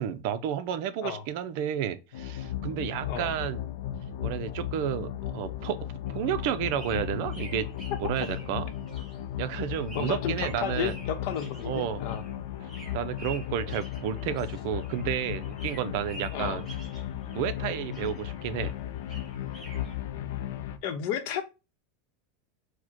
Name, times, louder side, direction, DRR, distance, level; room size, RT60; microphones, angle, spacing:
voice 1, 0.0-3.6 4.2-7.7 8.0-8.7 9.4-10.9 11.7-12.0 12.9-16.6 17.3-18.7, right 9 dB, 55° right, 0.5 m, -31 dB
sound 1, 2.1-20.8, left 11 dB, 75° left, 0.5 m, -36 dB
sound 2, 6.1-15.1 15.4-17.6 17.9-20.0, right 2 dB, 5° left, 1.7 m, -48 dB
voice 2, 9.9-12.2 16.3-16.6 20.8-21.4, left 8 dB, 55° left, 0.8 m, -32 dB
4.7 x 2.2 x 4.4 m
supercardioid pair, 150°, 0 cm